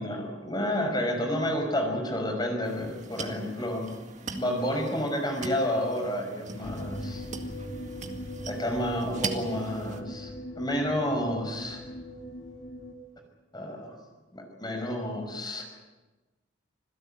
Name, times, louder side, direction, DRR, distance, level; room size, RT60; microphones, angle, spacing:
voice 1, 0.0-3.9 4.3-7.2 8.5-11.8 13.5-14.0 14.3-15.6, equal, 20° left, 3 dB, 5.7 m, -30 dB
sound 1, 2.6-10.0, right 4 dB, 40° right, 2.0 m, -41 dB
sound 2, 6.6-12.9, equal, 60° left, 2.7 m, -40 dB
27.0 x 17.0 x 9.0 m, 1.2 s
head